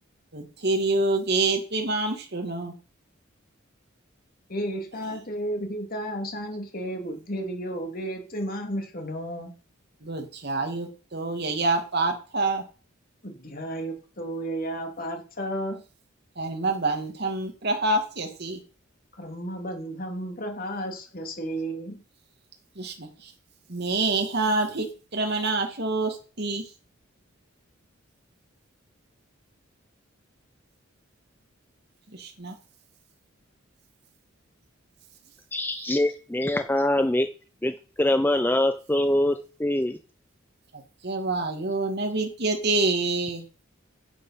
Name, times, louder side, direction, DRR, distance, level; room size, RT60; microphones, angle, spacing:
voice 1, 0.3-2.7 5.0-5.2 10.0-12.6 16.4-18.6 22.8-23.3 23.7-26.7 32.1-32.5 35.7-35.9 40.7-43.4, right 2 dB, 55° right, 3 dB, 2.2 m, -27 dB
voice 2, 4.5-9.5 13.2-15.8 19.2-22.0, right 1 dB, 45° left, 3 dB, 2.9 m, -33 dB
voice 3, 35.5-37.3 37.6-40.0, left 1 dB, 10° left, 8 dB, 0.6 m, -24 dB
11.0 x 8.0 x 5.7 m, 0.35 s
head